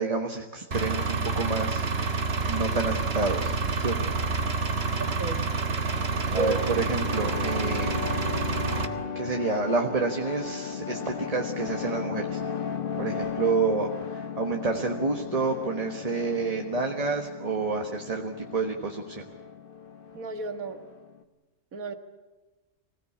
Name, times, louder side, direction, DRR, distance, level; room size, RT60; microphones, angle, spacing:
voice 1, 0.0-1.9 2.5-4.1 6.3-8.0 9.1-12.4 13.0-19.3, right 3 dB, 30° right, 3 dB, 1.5 m, -29 dB
Engine, 0.7-8.9, right 4 dB, 50° right, 1.8 m, -28 dB
voice 2, 5.0-5.5 6.3-6.6 20.1-20.8 21.7-21.9, right 3 dB, 85° right, 8 dB, 2.1 m, -33 dB
sound 1, 5.8-21.2, left 6 dB, 45° left, 1.3 m, -36 dB
24.5 x 17.5 x 8.6 m, 1.2 s
omnidirectional pair, 1.4 m